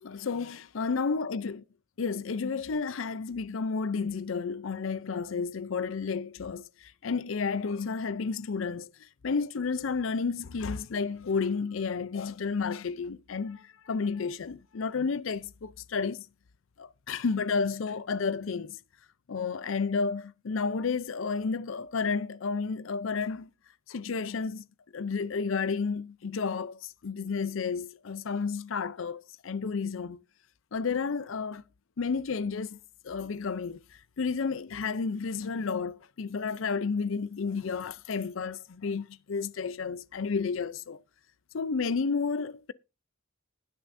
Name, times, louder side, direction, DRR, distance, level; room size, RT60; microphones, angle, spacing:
voice 1, 0.0-1.6 2.0-8.9 9.2-16.2 16.8-18.8 19.3-23.5 23.9-24.6 24.9-30.2 30.7-31.6 32.0-32.8 33.0-33.8 34.2-41.0 41.5-42.7, left 5 dB, 65° left, 0.5 m, -31 dB
20.0 x 6.8 x 2.6 m
head